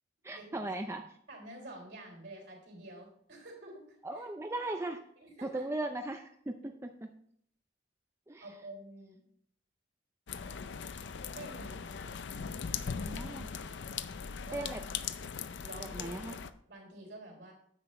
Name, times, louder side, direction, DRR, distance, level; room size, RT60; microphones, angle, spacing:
voice 1, 0.2-1.2 4.0-5.0 5.4-7.1 8.3-8.5 13.1-13.5 14.5-14.8 15.8-16.4, right 2 dB, 15° right, 5 dB, 0.4 m, -38 dB
voice 2, 1.3-3.8 4.2-4.8 5.2-5.6 8.4-9.2 11.3-12.1 13.6-13.8 14.1-14.8 15.6-16.4 16.7-17.5, right 1 dB, 65° right, -1 dB, 3.6 m, -49 dB
sound 1, 10.3-16.5, left 6 dB, 65° left, 0.5 m, -40 dB
9.8 x 7.8 x 3.2 m, 0.66 s
head